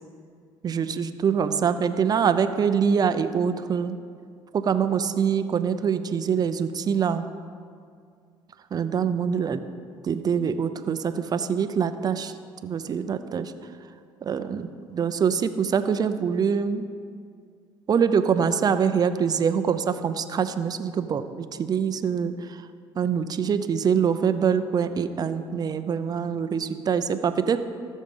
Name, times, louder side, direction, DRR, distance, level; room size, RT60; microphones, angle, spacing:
voice 1, 0.6-4.0 4.5-7.3 8.7-9.6 10.1-12.3 12.6-13.5 14.2-16.8 17.9-22.3 23.0-27.6, right 7 dB, 40° right, 10 dB, 0.6 m, -24 dB
14.0 x 6.5 x 5.5 m, 2.2 s
supercardioid pair, 80°, 10 cm